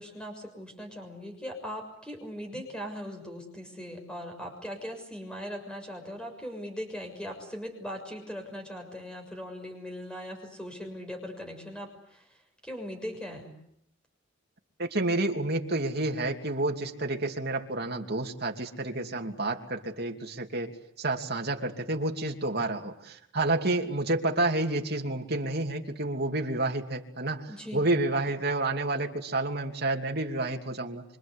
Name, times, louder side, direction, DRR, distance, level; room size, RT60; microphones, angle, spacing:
voice 1, 0.0-12.2 12.6-13.5 27.5-27.8, equal, 5° left, 3 dB, 6.7 m, -39 dB
voice 2, 14.8-20.7 21.0-31.0, right 2 dB, 50° right, 2 dB, 2.9 m, -29 dB
26.0 x 26.0 x 8.3 m, 0.73 s
head